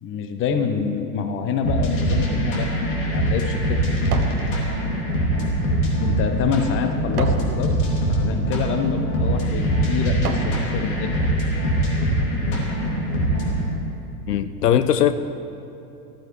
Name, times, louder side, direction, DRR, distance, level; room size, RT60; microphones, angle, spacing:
voice 1, 0.0-3.8 6.0-7.7 8.1-11.1, left 6 dB, 25° left, 7 dB, 0.8 m, -27 dB
sound 1, 1.6-13.7, right 1 dB, 50° left, 2.5 m, -23 dB
sound 2, 2.7-4.4 4.9-7.5 8.1-8.4 9.0-9.2 9.7-10.6 11.1-11.2, right 5 dB, 75° right, 1.1 m, -34 dB
voice 2, 14.3-15.1, left 10 dB, 75° left, 11 dB, 0.6 m, -19 dB
14.0 x 13.0 x 3.1 m, 2.9 s
figure-of-eight pair, 95°, 47 cm